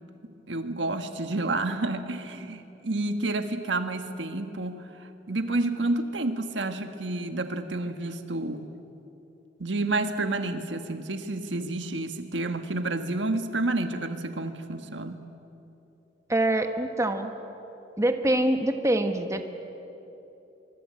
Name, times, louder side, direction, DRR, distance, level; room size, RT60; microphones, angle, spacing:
voice 1, 0.5-4.8 5.3-8.7 9.6-15.2, right 2 dB, 80° right, 7 dB, 1.6 m, -29 dB
voice 2, 16.3-17.3 18.0-19.4, right 1 dB, 15° right, 6 dB, 1.4 m, -24 dB
24.5 x 23.5 x 8.7 m, 2.9 s
head